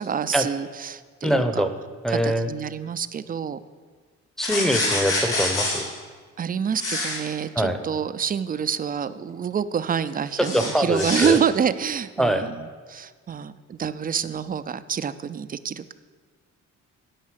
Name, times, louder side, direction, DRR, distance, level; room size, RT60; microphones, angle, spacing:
voice 1, 0.0-1.7 2.1-3.6 6.4-15.9, right 7 dB, 30° right, 13 dB, 0.4 m, -27 dB
voice 2, 1.2-1.7 2.0-2.5 4.4-5.9 7.5-7.8 10.4-11.4 12.2-12.5, equal, ahead, 9 dB, 0.8 m, -23 dB
sound 1, 4.4-5.8 6.7-7.2 10.4-11.3, left 2 dB, 90° left, 2.6 m, -26 dB
9.5 x 5.6 x 7.4 m, 1.5 s
cardioid pair, 90°, 30 cm